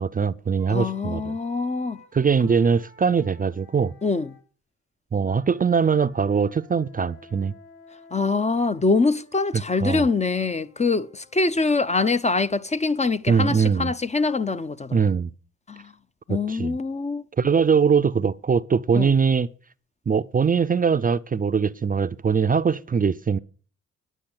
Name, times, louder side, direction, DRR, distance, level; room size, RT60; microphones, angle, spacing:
voice 1, 0.0-1.4 2.1-3.9 5.1-7.5 9.5-10.1 13.3-13.9 14.9-15.3 16.3-16.8 17.4-19.5 20.1-23.4, right 6 dB, 30° right, 0.5 m, -22 dB
sound 1, 0.6-4.4 5.2-11.7, left 2 dB, 70° left, 4.3 m, -53 dB
voice 2, 0.7-2.0 4.0-4.3 8.1-15.0 15.7-15.9 16.3-17.2 18.9-19.1, left 3 dB, 25° left, 0.6 m, -24 dB
10.0 x 6.2 x 7.6 m
cardioid pair, 80°, 29 cm